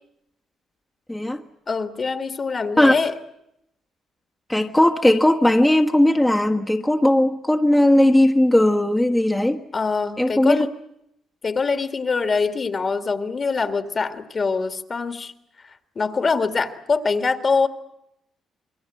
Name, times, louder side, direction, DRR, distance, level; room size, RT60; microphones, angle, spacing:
voice 1, 1.1-1.4 2.8-2.9 4.5-9.6 10.2-10.6, left 1 dB, 10° left, 1.5 m, -17 dB
voice 2, 1.7-3.1 9.7-10.7 11.4-15.3 15.6-17.7, left 4 dB, 40° left, 2.1 m, -24 dB
27.0 x 22.5 x 7.7 m
cardioid pair, 90°, 0 cm